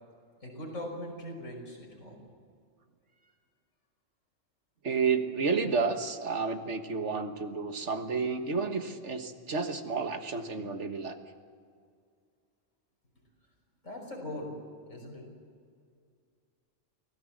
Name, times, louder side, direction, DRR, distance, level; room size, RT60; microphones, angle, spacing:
voice 1, 0.4-2.2 3.2-3.3 13.8-14.5 14.9-15.2, left 1 dB, 90° left, 0 dB, 5.9 m, -40 dB
voice 2, 4.8-11.2, right 5 dB, 65° right, 7 dB, 1.8 m, -31 dB
24.5 x 17.5 x 7.6 m, 2.2 s
omnidirectional pair, 1.3 m